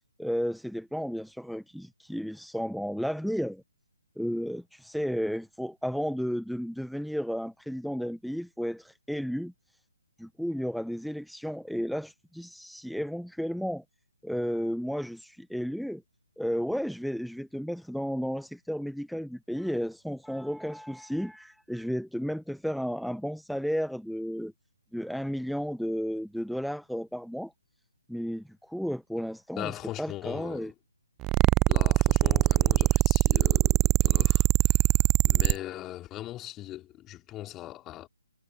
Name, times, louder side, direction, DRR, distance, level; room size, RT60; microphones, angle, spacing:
voice 1, 0.2-3.6 4.2-9.5 10.2-13.8 14.2-16.0 16.4-24.5 24.9-27.5 28.1-30.7, equal, ahead, 0.9 m, -33 dB
voice 2, 29.6-30.7 31.7-34.8 35.3-38.1, left 14 dB, 15° left, 3.4 m, -40 dB
sound 1, 31.2-35.6, right 19 dB, 20° right, 0.4 m, -22 dB
figure-of-eight pair, 140°, 0 cm